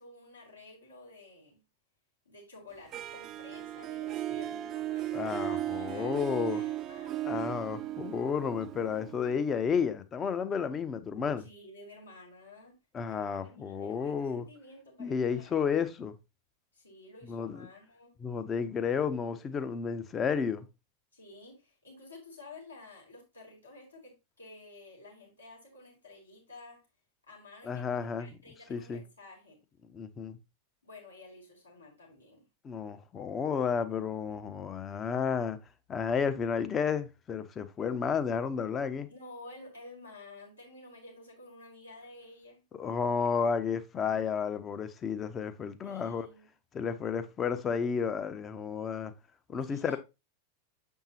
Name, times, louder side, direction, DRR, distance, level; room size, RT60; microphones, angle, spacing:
voice 1, 0.0-1.6 2.2-7.3 11.4-12.8 13.0-15.5 16.7-18.1 21.1-26.8 27.3-27.9 28.2-29.6 30.8-32.5 39.1-42.6 45.8-46.5 49.7-50.0, left 2 dB, 80° left, 3.1 m, -51 dB
Harp, 2.9-9.8, right 13 dB, 30° right, 0.4 m, -36 dB
voice 2, 5.1-6.6 7.2-11.5 12.9-14.5 15.0-16.1 17.3-17.7 18.2-20.7 27.6-28.3 28.7-29.0 29.9-30.4 32.6-35.6 35.9-39.1 42.7-46.3 46.7-49.1 49.5-50.0, left 6 dB, 25° left, 0.7 m, -32 dB
7.3 x 5.5 x 2.9 m
figure-of-eight pair, 90°, 0 cm